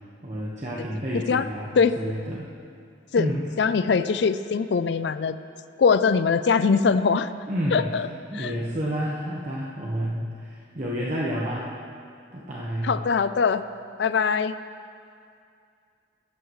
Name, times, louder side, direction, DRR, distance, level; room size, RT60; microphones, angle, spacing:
voice 1, 0.2-2.5 3.2-3.5 7.5-7.9 8.3-11.7 12.3-13.0, equal, 40° right, -5 dB, 1.3 m, -30 dB
voice 2, 1.1-1.5 1.8-2.0 3.1-3.3 3.6-5.4 5.8-7.3 7.7-8.1 8.3-8.5 12.8-13.6 14.0-14.5, left 5 dB, 65° left, 12 dB, 0.4 m, -22 dB
17.5 x 14.0 x 3.2 m, 2.4 s
head